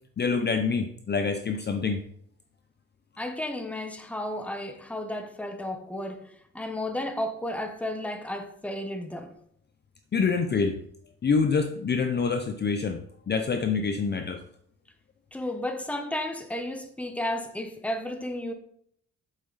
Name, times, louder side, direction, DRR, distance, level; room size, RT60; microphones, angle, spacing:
voice 1, 0.2-2.0 10.1-10.8 11.2-14.4, left 5 dB, 35° left, 7 dB, 0.6 m, -26 dB
voice 2, 3.2-9.3 15.3-18.5, left 1 dB, 5° left, 5 dB, 1.0 m, -33 dB
8.2 x 8.0 x 4.0 m, 0.67 s
wide cardioid pair, 160°, 31 cm